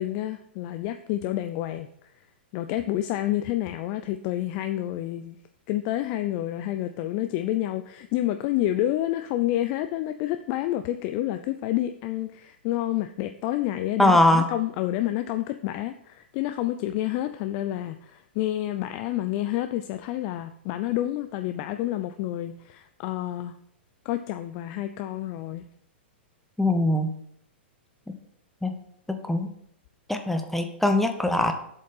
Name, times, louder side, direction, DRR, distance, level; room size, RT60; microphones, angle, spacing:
voice 1, 0.0-1.9 2.5-5.4 5.7-23.5 24.0-25.6, left 14 dB, 45° left, 9 dB, 0.4 m, -29 dB
voice 2, 14.0-14.4 26.6-27.1 28.6-28.7 29.1-29.5 30.1-31.5, left 1 dB, 5° left, 6 dB, 0.8 m, -21 dB
7.6 x 5.2 x 5.5 m, 0.73 s
hypercardioid pair, 115°, 6 cm